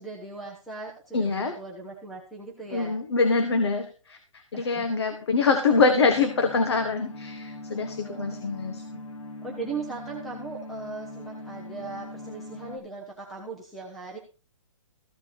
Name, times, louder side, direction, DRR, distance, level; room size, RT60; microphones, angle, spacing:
voice 1, 0.0-3.0 4.5-5.4 7.7-8.4 9.4-14.2, right 4 dB, ahead, -1 dB, 0.6 m, -39 dB
voice 2, 1.1-1.5 2.7-4.2 4.5-8.8, left 4 dB, 55° left, 7 dB, 1.5 m, -24 dB
sound 1, 5.7-12.8, left 2 dB, 70° left, 3.3 m, -41 dB
14.5 x 7.5 x 4.2 m, 0.34 s
hypercardioid pair, 180°, 17 cm